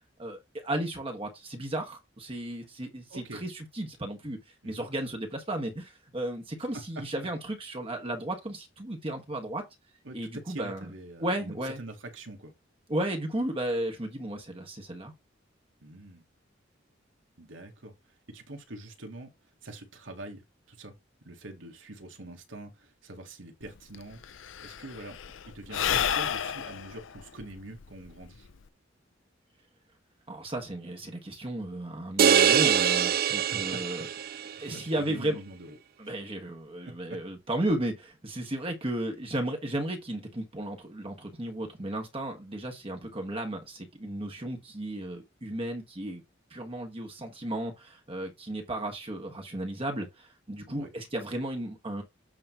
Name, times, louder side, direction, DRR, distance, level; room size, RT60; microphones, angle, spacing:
voice 1, 0.2-4.4 4.6-9.6 10.1-10.9 11.2-11.8 12.9-15.1 30.3-34.3 34.6-35.4 36.0-46.2 46.5-52.0, right 1 dB, 30° right, 1.5 m, -34 dB
voice 2, 3.1-3.4 4.6-4.9 6.7-6.8 7.2-7.3 10.0-12.5 15.8-16.2 17.4-19.3 19.6-20.9 21.2-24.2 24.6-25.2 25.4-28.5 33.3-33.8 34.5-35.7 36.8-37.2 50.7-50.9, right 1 dB, 80° right, 1.9 m, -44 dB
Sigh / Breathing, 23.7-23.8 23.9-28.7, left 8 dB, 75° left, 0.6 m, -31 dB
sound 1, 32.2-34.5, right 8 dB, 50° right, 0.5 m, -23 dB
8.6 x 3.2 x 5.6 m
head